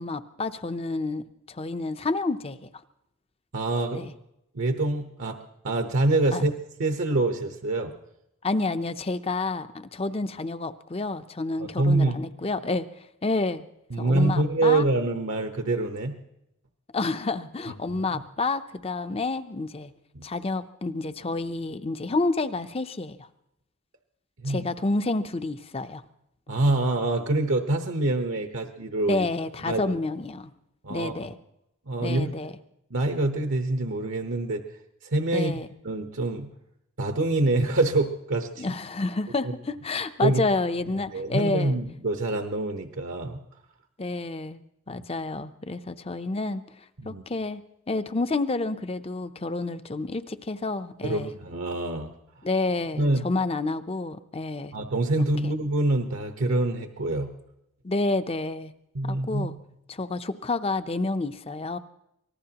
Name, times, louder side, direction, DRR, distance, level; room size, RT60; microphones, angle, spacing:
voice 1, 0.0-2.7 3.9-4.1 6.3-6.4 8.4-12.9 13.2-13.6 14.0-14.9 16.9-19.9 20.2-23.3 24.4-26.0 29.1-30.5 30.9-31.4 32.0-32.5 35.3-35.7 38.6-41.7 44.0-46.6 47.0-47.6 47.9-51.3 52.4-54.7 55.4-55.5 57.8-58.7 59.0-59.6 59.9-61.8, left 3 dB, 25° left, 11 dB, 0.6 m, -29 dB
voice 2, 3.5-4.1 4.5-5.4 5.6-6.5 6.8-7.9 11.6-12.2 13.9-16.2 17.9-18.2 20.1-20.3 24.4-24.7 26.5-29.2 29.7-30.0 30.8-31.3 31.9-32.5 32.9-34.6 35.0-36.5 37.0-38.7 40.2-40.4 41.1-43.4 47.0-47.2 51.0-52.1 53.0-53.3 54.7-57.3 58.9-59.6, right 2 dB, 70° right, 5 dB, 1.0 m, -26 dB
25.0 x 19.0 x 2.9 m, 0.83 s
head